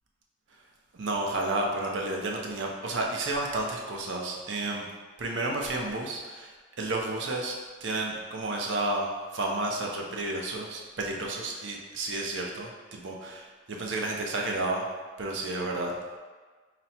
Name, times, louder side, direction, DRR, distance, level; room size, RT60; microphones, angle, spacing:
voice 1, 1.0-4.9 5.2-6.5 6.8-7.6 7.8-14.9 15.2-15.9, right 2 dB, 70° right, 0 dB, 0.6 m, -31 dB
4.1 x 2.1 x 4.1 m, 1.4 s
head